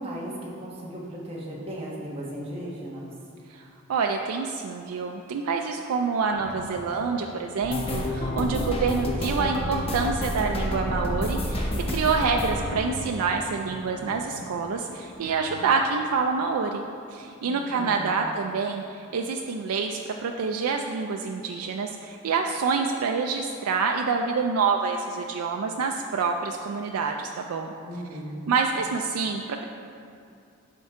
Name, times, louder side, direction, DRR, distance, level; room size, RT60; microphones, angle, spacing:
voice 1, 0.0-3.1 17.4-18.2 27.8-28.6, right 1 dB, 25° right, -5 dB, 1.3 m, -36 dB
voice 2, 3.5-16.8 17.1-27.7 28.5-29.6, right 5 dB, 90° right, 3 dB, 0.4 m, -27 dB
sound 1, 6.3-15.6, equal, 70° right, 1.6 m, -43 dB
sound 2, 7.6-14.5 14.7-15.8 16.1-16.4 16.7-16.9, equal, 25° left, 0.7 m, -30 dB
11.5 x 4.5 x 3.6 m, 2.5 s
head